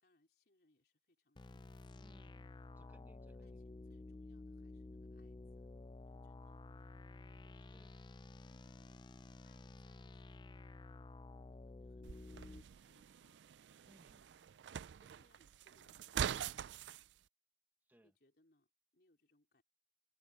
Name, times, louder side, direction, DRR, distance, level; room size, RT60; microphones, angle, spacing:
voice 1, 0.0-2.3 3.2-6.6 7.3-7.8 8.4-9.1 9.4-10.7 11.5-13.4 14.5-16.7 18.0-19.6, left 2 dB, 60° left, 4.1 m, -76 dB
sound 1, 1.4-12.6, left 2 dB, 25° left, 0.4 m, -53 dB
voice 2, 1.9-2.5 2.7-3.6 7.5-7.9 13.8-14.3 17.8-18.1, equal, 10° right, 1.4 m, -67 dB
sound 2, 12.0-17.0, right 8 dB, 85° right, 0.4 m, -44 dB
open air
head